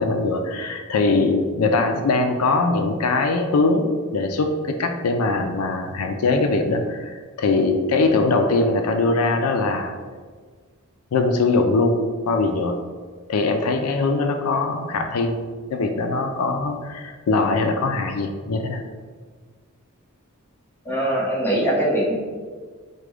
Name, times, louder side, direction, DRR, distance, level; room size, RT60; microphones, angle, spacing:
voice 1, 0.0-10.0 11.1-12.8 13.3-15.4 15.7-18.8, left 3 dB, 80° left, 5 dB, 0.4 m, -21 dB
voice 2, 20.9-22.1, right 1 dB, 10° left, -6 dB, 1.1 m, -21 dB
4.8 x 2.2 x 4.8 m, 1.5 s
head